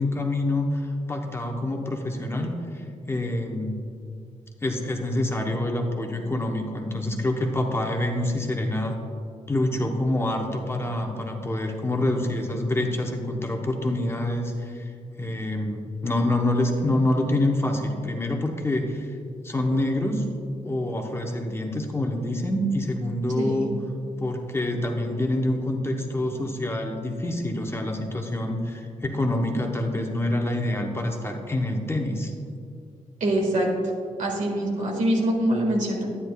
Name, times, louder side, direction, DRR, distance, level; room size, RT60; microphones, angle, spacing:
voice 1, 0.0-3.7 4.6-9.0 9.5-14.9 15.2-19.1 19.4-20.2 20.6-23.8 24.2-32.3, left 1 dB, 20° left, 2 dB, 0.8 m, -26 dB
voice 2, 23.4-23.7 33.2-33.7 34.2-36.1, right 1 dB, 75° right, -1 dB, 1.7 m, -24 dB
10.0 x 9.7 x 2.3 m, 2.3 s
cardioid pair, 90°, 13 cm